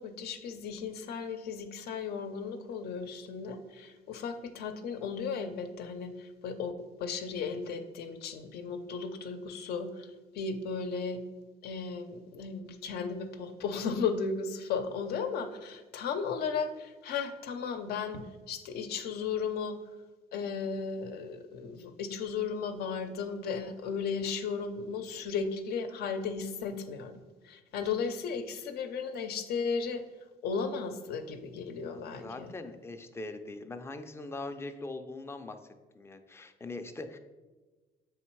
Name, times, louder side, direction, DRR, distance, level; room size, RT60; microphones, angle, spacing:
voice 1, 0.0-6.7 7.0-10.1 10.3-11.2 11.6-19.8 20.3-27.1 27.4-30.0 30.4-32.5, left 5 dB, 70° left, 8 dB, 0.7 m, -35 dB
voice 2, 31.9-35.6 35.9-37.2, left 2 dB, 15° left, 7 dB, 0.5 m, -41 dB
7.3 x 3.6 x 4.5 m, 1.3 s
cardioid pair, 110°, 17 cm